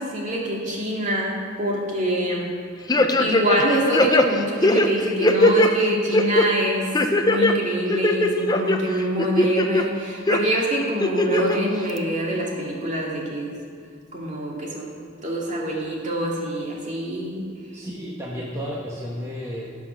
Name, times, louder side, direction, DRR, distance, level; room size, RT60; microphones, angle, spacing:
voice 1, 0.0-2.6 3.2-6.9 7.2-13.6 14.1-15.0 15.2-17.5, equal, 40° right, -3 dB, 2.5 m, -25 dB
sound 1, 2.9-3.6 3.9-5.7 6.1-6.5 6.9-7.5 7.9-8.8 9.2-9.8 10.3-10.4 11.0-11.6 12.0-12.1, left 2 dB, 20° left, 0.6 m, -19 dB
voice 2, 17.7-19.7, equal, 15° right, -5 dB, 1.3 m, -32 dB
17.0 x 6.0 x 6.2 m, 2.1 s
head